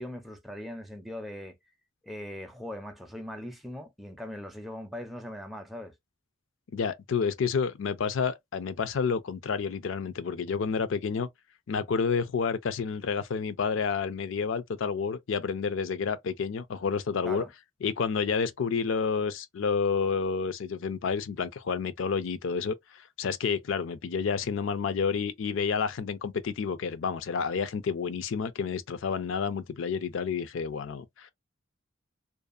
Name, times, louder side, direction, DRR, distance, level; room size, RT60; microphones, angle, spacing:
voice 1, 0.0-1.6 2.0-5.9 17.2-17.5, left 1 dB, ahead, 0.4 m, -40 dB
voice 2, 6.7-11.3 11.7-17.4 17.8-22.8 23.2-31.3, left 5 dB, 70° left, 0.4 m, -29 dB
2.6 x 2.3 x 2.3 m
head